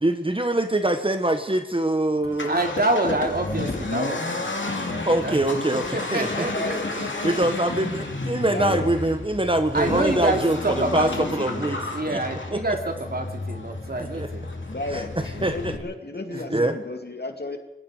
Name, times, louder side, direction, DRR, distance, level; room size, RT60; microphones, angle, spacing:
voice 1, 0.0-2.6 5.0-6.6 7.0-11.8 12.1-12.2 12.5-12.6 14.0-14.3 14.9-15.8 16.5-16.8, right 1 dB, 25° right, 7 dB, 1.4 m, -24 dB
Accelerating revving vroom, 2.2-15.8, left 2 dB, 80° left, 2.7 m, -31 dB
voice 2, 2.4-5.4 5.9-7.4 9.7-14.4 15.3-15.4 16.3-16.6, right 2 dB, 55° right, 3 dB, 3.0 m, -27 dB
voice 3, 6.3-6.9 8.5-8.9 14.7-15.1 15.4-17.6, left 2 dB, 60° left, 5 dB, 2.5 m, -33 dB
26.0 x 20.0 x 5.0 m, 0.99 s
wide cardioid pair, 60°, 19 cm